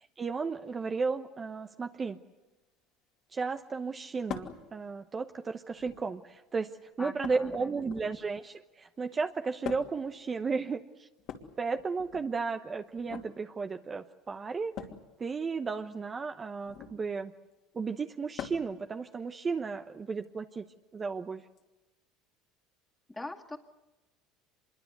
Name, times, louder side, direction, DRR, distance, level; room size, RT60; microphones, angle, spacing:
voice 1, 0.2-2.2 3.3-6.7 7.0-11.1 11.6-14.7 15.2-17.3 17.7-20.6 20.9-21.4, right 4 dB, 25° right, 7 dB, 1.0 m, -34 dB
sound 1, 4.3-4.6 5.7-6.2 7.2-8.3 9.6-10.1 11.2-12.3 13.0-13.3 14.7-15.1 16.6-17.0 18.4-18.8 20.2-20.3 21.6-21.7, left 9 dB, 55° left, 2.8 m, -42 dB
voice 2, 7.0-7.8 23.1-23.6, left 2 dB, 10° left, 3 dB, 2.3 m, -42 dB
25.5 x 22.5 x 8.2 m, 1.1 s
supercardioid pair, 100°, 0 cm